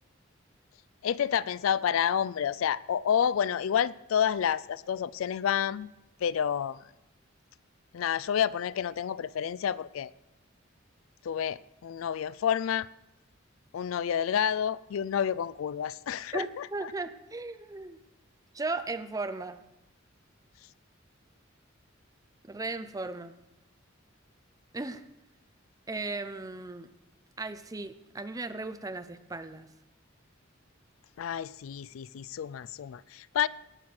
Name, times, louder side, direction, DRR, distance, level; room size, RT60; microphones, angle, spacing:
voice 1, 1.0-5.9 6.2-6.8 7.9-10.1 11.2-12.9 13.7-16.7 31.2-33.5, left 8 dB, 80° left, 0.3 m, -29 dB
voice 2, 16.3-18.0 18.5-19.7 22.4-23.4 24.7-25.0 25.9-26.9 27.4-29.7, right 3 dB, 20° right, 0.6 m, -36 dB
18.0 x 6.4 x 6.1 m
head